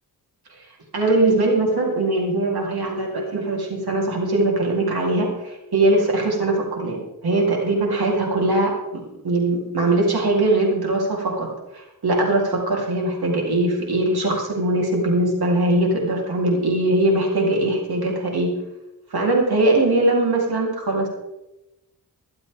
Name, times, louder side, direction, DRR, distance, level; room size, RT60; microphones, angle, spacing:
voice 1, 0.9-11.5 11.7-18.5 19.1-21.1, right 2 dB, 70° right, -1 dB, 3.9 m, -21 dB
23.5 x 7.8 x 3.8 m, 0.96 s
cardioid pair, 75°, 39 cm